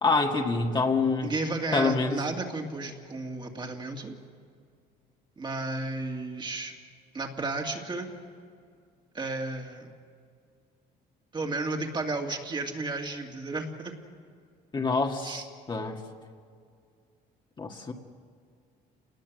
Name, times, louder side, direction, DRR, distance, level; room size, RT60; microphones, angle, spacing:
voice 1, 0.0-1.3 1.7-2.2 14.7-15.3 15.7-16.0 17.6-17.9, left 4 dB, 25° left, 1 dB, 2.0 m, -26 dB
voice 2, 1.2-4.1 5.4-6.7 7.1-8.1 9.1-9.9 11.3-14.0 15.2-15.5, right 2 dB, 25° right, 2 dB, 2.6 m, -33 dB
28.0 x 20.0 x 7.8 m, 2.2 s
cardioid pair, 110°, 17 cm